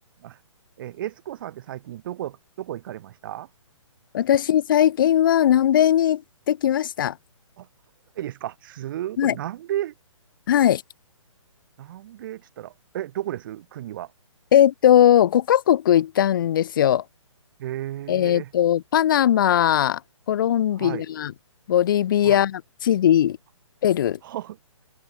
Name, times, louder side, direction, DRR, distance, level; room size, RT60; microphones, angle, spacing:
voice 1, 0.8-3.5 7.6-7.7 8.1-9.9 11.8-14.1 17.6-18.5 20.8-21.0 22.2-22.4 24.2-24.6, right 12 dB, 40° right, 3.3 m, -33 dB
voice 2, 4.1-6.2 6.5-7.2 9.2-9.4 10.5-10.8 14.5-17.0 18.1-20.0 20.3-21.3 21.7-23.4 23.8-24.2, left 11 dB, 40° left, 0.4 m, -19 dB
open air
hypercardioid pair, 150°, 17 cm